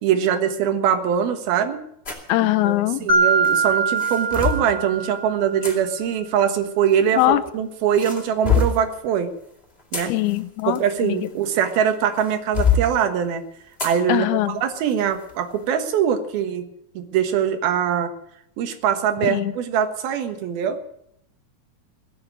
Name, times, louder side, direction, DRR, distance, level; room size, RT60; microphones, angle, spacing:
voice 1, 0.0-1.8 2.6-2.7 3.0-9.3 9.9-10.1 10.7-13.4 13.8-16.6 16.9-18.1 18.6-20.8, right 8 dB, 80° right, 8 dB, 3.3 m, -22 dB
sound 1, 2.0-2.3 3.4-4.7 5.6-5.7 6.9-7.5 7.9-8.9 9.6-11.7 12.2-12.9 13.8-14.0 14.4-14.5 15.1-15.3, left 5 dB, 15° left, 2.9 m, -24 dB
voice 2, 2.3-3.1 7.1-7.4 10.1-11.2 14.1-14.6 19.2-19.5, left 17 dB, 85° left, 12 dB, 2.7 m, -21 dB
Mallet percussion, 3.1-5.6, right 4 dB, 30° right, 5.4 m, -22 dB
20.5 x 7.3 x 9.5 m, 0.74 s
omnidirectional pair, 4.4 m